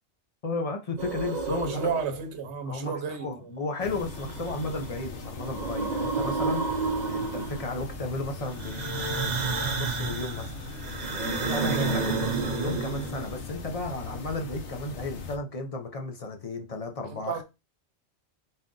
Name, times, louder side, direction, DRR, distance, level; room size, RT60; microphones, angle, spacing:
voice 1, 0.4-1.7 2.7-2.9 3.2-6.6 7.1-10.6 11.1-17.4, left 3 dB, 40° left, 0.6 m, -34 dB
sound 1, 1.0-2.2 4.0-4.9 5.2-7.8 8.6-13.4, right 4 dB, 45° right, 0.8 m, -31 dB
voice 2, 1.5-3.5 11.6-12.0 17.1-17.4, right 4 dB, 75° right, 1.0 m, -32 dB
sound 2, 3.8-15.4, left 2 dB, 80° left, 1.1 m, -40 dB
4.2 x 2.5 x 3.7 m
omnidirectional pair, 1.2 m